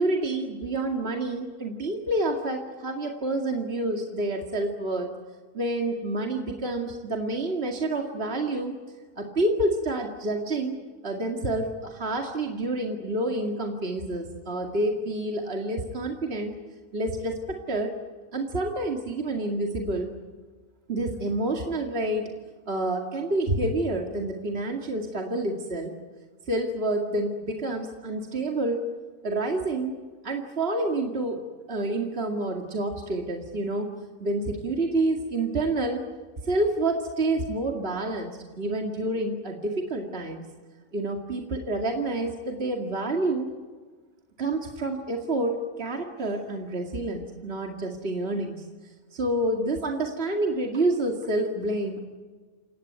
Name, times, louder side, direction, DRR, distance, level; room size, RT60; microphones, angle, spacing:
voice 1, 0.0-5.1 5.5-8.8 9.2-16.5 16.9-18.0 18.3-20.1 20.9-22.3 22.7-25.9 26.5-28.9 29.2-31.4 31.7-33.9 34.2-36.0 36.4-40.4 40.9-43.5 44.4-48.6 49.1-52.0, right 2 dB, 50° right, 2 dB, 2.5 m, -28 dB
29.0 x 17.0 x 9.5 m, 1.4 s
omnidirectional pair, 1.4 m